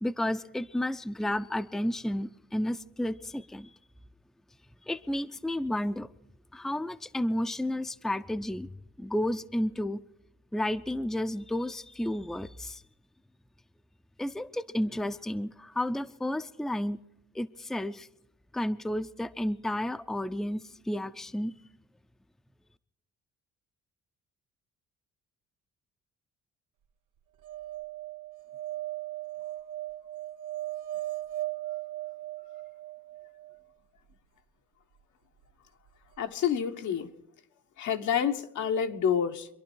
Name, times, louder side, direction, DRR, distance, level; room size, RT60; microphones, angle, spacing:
voice 1, 0.0-3.7 4.9-6.1 6.5-8.7 9.0-10.0 10.5-12.8 14.2-17.0 17.3-18.1 18.5-21.5, left 1 dB, ahead, 10 dB, 0.6 m, -32 dB
sound 1, 27.4-33.6 35.9-36.0 36.1-36.2, right 16 dB, 90° right, 0.9 m, -38 dB
voice 2, 36.2-37.1 37.8-39.5, left 8 dB, 75° left, 5 dB, 1.4 m, -28 dB
26.0 x 11.5 x 4.6 m, 0.85 s
cardioid pair, 90°, 30 cm